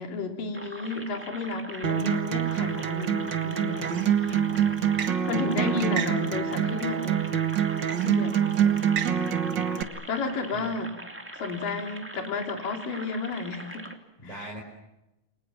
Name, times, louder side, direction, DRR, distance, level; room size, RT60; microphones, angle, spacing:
voice 1, 0.0-4.4 5.3-7.3 8.0-8.4 10.1-11.0 11.3-13.9 14.2-14.6, left 3 dB, 85° left, 4 dB, 4.9 m, -32 dB
sound 1, 0.5-13.9, right 1 dB, 5° right, 1.8 m, -42 dB
Acoustic guitar, 1.8-9.8, right 8 dB, 45° right, 1.5 m, -26 dB
voice 2, 4.1-5.1 8.5-8.8 10.5-10.7 14.2-14.6, equal, 10° left, 0 dB, 4.9 m, -43 dB
29.5 x 23.5 x 7.3 m, 0.95 s
omnidirectional pair, 3.8 m